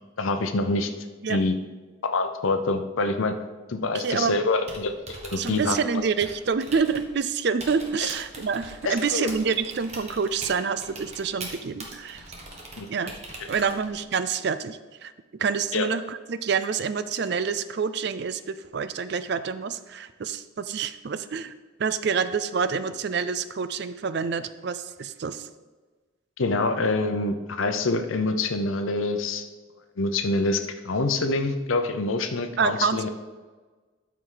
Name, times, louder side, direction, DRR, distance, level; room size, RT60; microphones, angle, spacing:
voice 1, 0.2-0.9 1.3-1.6 2.1-3.3 3.7-4.9 5.2-6.0 8.8-9.3 12.8-12.9 15.7-15.9 26.4-29.4 30.0-33.1, left 3 dB, 80° left, 7 dB, 0.7 m, -26 dB
voice 2, 3.9-4.4 5.4-12.2 12.9-13.2 13.5-15.1 15.4-21.5 21.8-25.5 32.6-33.1, right 5 dB, 55° right, 12 dB, 0.4 m, -27 dB
Typing, 4.5-14.1, right 2 dB, 30° right, 1.3 m, -42 dB
12.5 x 4.8 x 3.9 m, 1.3 s
head